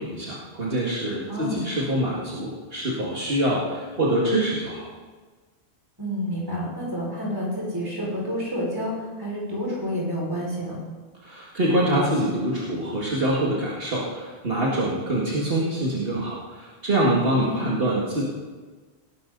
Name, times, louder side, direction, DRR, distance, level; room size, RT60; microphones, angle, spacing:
voice 1, 0.0-4.9 11.2-18.2, right 1 dB, 60° right, -5 dB, 2.2 m, -25 dB
voice 2, 1.3-1.6 6.0-10.7 17.3-17.7, equal, 20° right, -5 dB, 5.3 m, -29 dB
18.5 x 11.5 x 3.9 m, 1.4 s
omnidirectional pair, 1.1 m